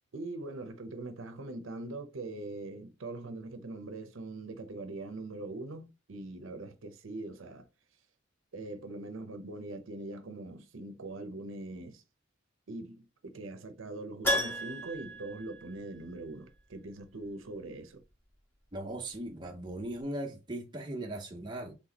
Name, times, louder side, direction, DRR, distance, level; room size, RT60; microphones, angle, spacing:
voice 1, 0.1-7.7 8.5-12.0 12.7-18.0, right 2 dB, 75° right, 0.7 m, -42 dB
Keyboard (musical), 14.2-16.3 16.6-16.7 19.4-19.5 19.7-19.8, equal, 10° left, 1.3 m, -34 dB
voice 2, 18.7-21.7, right 1 dB, 20° right, 0.6 m, -38 dB
4.0 x 3.5 x 2.9 m
head